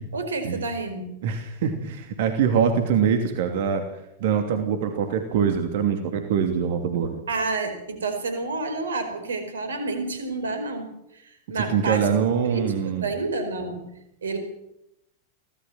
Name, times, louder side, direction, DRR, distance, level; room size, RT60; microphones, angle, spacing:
voice 1, 0.1-1.1 7.3-10.9 11.1-13.9 14.2-14.4, right 3 dB, 70° right, 8 dB, 4.7 m, -29 dB
voice 2, 1.2-3.8 4.2-7.2 11.7-13.1, right 7 dB, 55° right, 6 dB, 2.7 m, -23 dB
24.0 x 17.5 x 7.6 m, 0.84 s
figure-of-eight pair, 90°, 0 cm